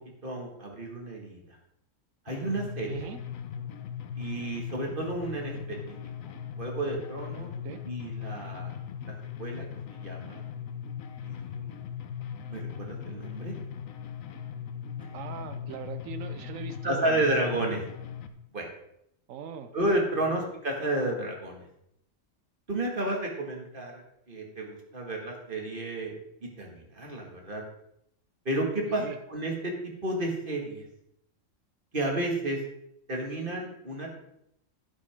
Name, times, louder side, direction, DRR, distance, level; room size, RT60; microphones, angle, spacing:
voice 1, 0.2-1.4 2.3-3.1 4.2-6.0 6.6-7.5 7.8-8.7 9.4-9.7 9.9-10.4 11.2-11.8 12.5-13.5 15.0-15.1 16.8-17.8 18.5-18.7 19.7-21.6 22.7-24.0 24.3-26.1 26.6-27.6 28.5-29.0 29.3-30.8 31.9-32.6 33.1-34.2, right 1 dB, 40° right, 0 dB, 2.1 m, -31 dB
sound 1, 2.3-18.3, left 8 dB, 90° left, 1.2 m, -39 dB
voice 2, 2.9-3.2 7.6-7.8 15.1-17.3 19.3-19.7 20.1-20.4 28.9-29.2, right 7 dB, 80° right, 9 dB, 1.2 m, -40 dB
12.0 x 8.9 x 3.6 m, 0.77 s
omnidirectional pair, 1.4 m